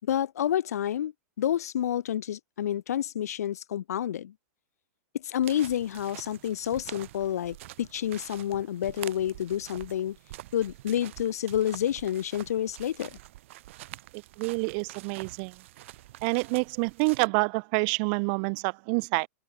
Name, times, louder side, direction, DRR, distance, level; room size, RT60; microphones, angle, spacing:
voice 1, 0.0-4.3 5.2-10.2 10.5-13.2, left 10 dB, 80° left, 4.9 m, -29 dB
sound 1, 5.4-17.3, right 16 dB, 55° right, 7.3 m, -46 dB
voice 2, 14.4-15.5 16.2-19.3, right 37 dB, 40° right, 1.1 m, -27 dB
open air
supercardioid pair, 160°, 8 cm